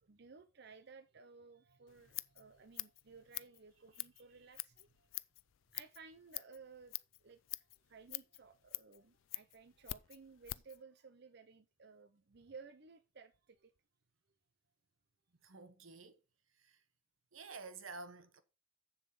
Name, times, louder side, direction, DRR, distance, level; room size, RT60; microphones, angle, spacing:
voice 1, 0.0-5.1 5.7-13.7, right 5 dB, 55° right, 0.6 m, -57 dB
Scissors, 1.9-10.8, left 17 dB, 70° left, 0.4 m, -47 dB
voice 2, 15.4-16.2 16.5-16.8 17.3-18.4, right 3 dB, 80° right, 1.1 m, -51 dB
7.3 x 7.1 x 5.3 m
head